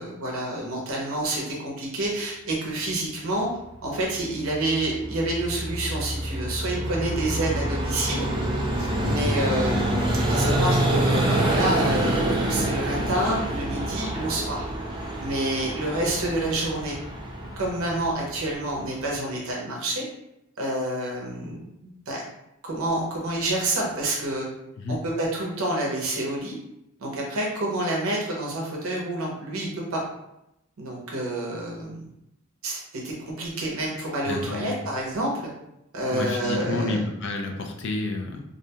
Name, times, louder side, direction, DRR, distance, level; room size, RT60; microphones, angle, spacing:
voice 1, 0.0-3.5 3.8-8.3 8.8-14.6 15.2-16.9 17.4-20.0 20.6-22.2 22.6-24.5 24.9-26.6 27.0-30.0 30.8-32.1 32.6-35.5 35.9-37.0, right 1 dB, 75° right, -2 dB, 0.6 m, -28 dB
Vehicle, 4.4-19.1, right 1 dB, 20° right, 0.3 m, -27 dB
voice 2, 8.8-9.2 24.8-25.0 34.2-34.8 36.1-38.4, left 2 dB, 55° left, 2 dB, 0.4 m, -30 dB
2.5 x 2.2 x 2.7 m, 0.84 s
head